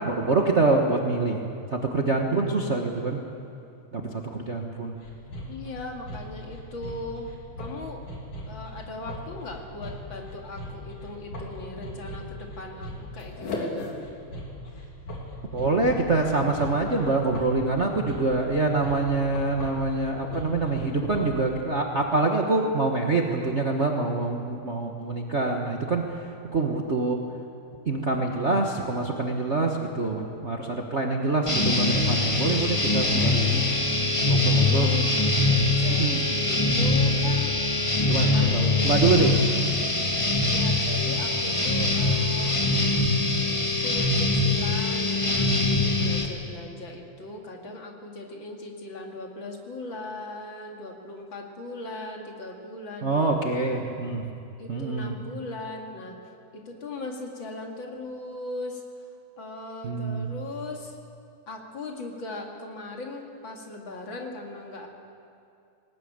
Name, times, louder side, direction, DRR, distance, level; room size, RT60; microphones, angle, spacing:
voice 1, 0.0-1.4 1.7-3.2 3.9-5.0 15.5-26.0 26.5-27.2 27.9-33.6 34.3-34.9 36.0-36.2 38.0-39.3 53.0-54.2 54.7-55.1 59.8-60.3, right 3 dB, 75° right, 0 dB, 0.6 m, -25 dB
sound 1, 5.0-21.4, equal, 70° left, 4.6 m, -38 dB
voice 2, 5.5-7.3 7.6-8.0 8.5-14.0 34.5-35.1 35.8-37.5 38.3-39.3 40.4-42.6 43.8-53.4 54.1-54.2 54.6-56.2 56.5-58.8 59.4-61.0 61.5-64.9, left 2 dB, 40° left, 1 dB, 2.7 m, -38 dB
sound 2, 31.5-46.3, left 2 dB, 15° left, 1.0 m, -23 dB
20.5 x 19.5 x 8.8 m, 2.5 s
omnidirectional pair, 3.6 m